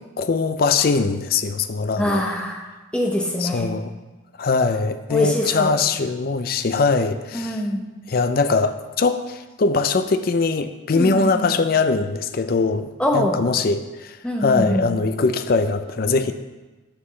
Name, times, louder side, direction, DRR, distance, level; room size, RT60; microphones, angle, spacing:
voice 1, 0.2-2.2 3.4-3.9 4.4-7.6 8.1-12.9 13.1-16.3, left 4 dB, 50° left, 9 dB, 0.4 m, -21 dB
voice 2, 2.0-2.6 2.9-3.7 5.1-5.7 7.3-7.8 10.9-11.5 13.0-13.4 14.2-14.9, left 1 dB, 5° left, 0 dB, 0.9 m, -23 dB
9.7 x 5.9 x 3.2 m, 1.2 s
head